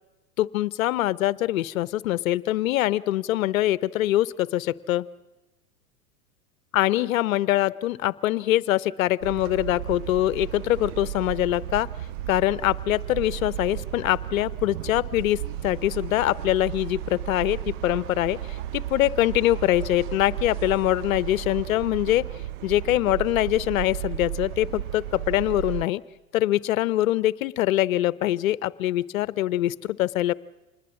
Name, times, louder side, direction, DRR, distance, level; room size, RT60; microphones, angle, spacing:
voice 1, 0.4-5.0 6.7-11.9 12.3-22.2 22.6-26.0 26.3-30.3, left 15 dB, 65° left, 19 dB, 0.9 m, -24 dB
sound 1, 9.2-25.8, right 13 dB, 55° right, 0.8 m, -34 dB
26.5 x 20.5 x 7.4 m, 1.0 s
hypercardioid pair, 100°, 45 cm